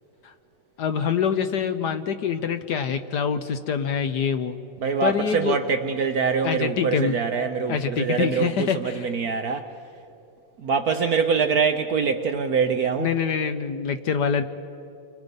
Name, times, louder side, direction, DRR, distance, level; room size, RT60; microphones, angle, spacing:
voice 1, 0.8-4.6 5.0-5.6 6.4-7.2 7.7-9.1 13.0-14.4, left 7 dB, 60° left, 1.2 m, -25 dB
voice 2, 4.8-9.7 10.6-13.1, right 5 dB, 60° right, 1.0 m, -24 dB
29.5 x 24.5 x 5.3 m
omnidirectional pair, 2.3 m